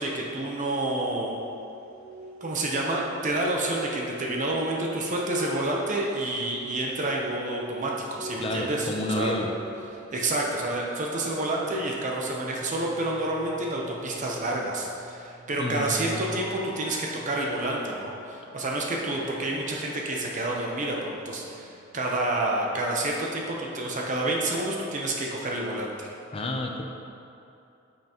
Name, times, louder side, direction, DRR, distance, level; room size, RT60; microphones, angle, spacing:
voice 1, 0.0-1.4 2.4-9.3 10.1-26.1, right 2 dB, 40° right, -1 dB, 0.8 m, -29 dB
sound 1, 0.8-9.8, right 3 dB, 90° right, 1.0 m, -43 dB
sound 2, 8.2-22.4, right 1 dB, ahead, 1.5 m, -51 dB
voice 2, 8.4-9.5 15.6-16.4 26.3-26.8, left 1 dB, 30° left, 2 dB, 0.6 m, -30 dB
8.9 x 5.6 x 3.0 m, 2.8 s
head